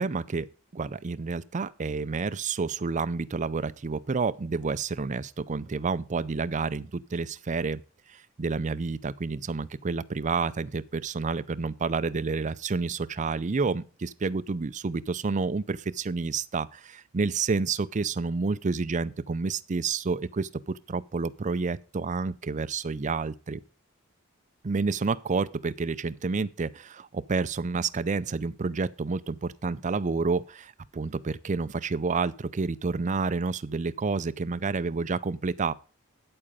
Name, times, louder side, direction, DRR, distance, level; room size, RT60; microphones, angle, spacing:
voice 1, 0.0-7.8 8.1-20.5 20.9-23.6 24.6-35.7, right 4 dB, 35° right, 0.5 m, -29 dB
8.8 x 8.7 x 5.0 m
head